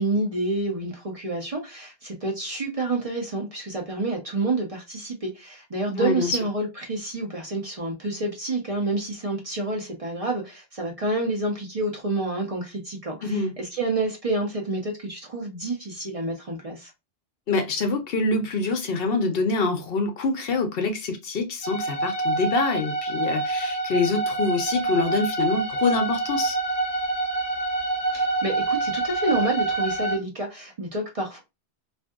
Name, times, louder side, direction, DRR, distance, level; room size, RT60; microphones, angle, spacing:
voice 1, 0.0-16.9 28.1-31.4, right 2 dB, 40° right, 0.7 m, -28 dB
voice 2, 6.0-6.4 13.2-13.5 17.5-26.6, left 3 dB, 65° left, 0.8 m, -25 dB
sound 1, 21.6-30.2, right 3 dB, 35° left, 0.9 m, -26 dB
2.6 x 2.5 x 2.3 m
omnidirectional pair, 1.1 m